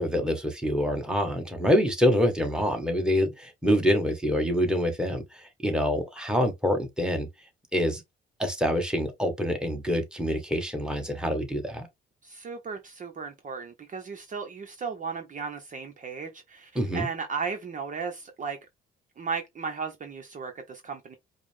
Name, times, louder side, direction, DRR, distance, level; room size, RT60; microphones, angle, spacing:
voice 1, 0.0-7.3 7.7-8.0 8.4-11.9 16.7-17.1, equal, 5° right, 1.5 m, -26 dB
voice 2, 12.2-18.6 19.2-21.2, right 5 dB, 40° right, 0.8 m, -35 dB
4.8 x 2.1 x 3.4 m
cardioid pair, 90°, 20 cm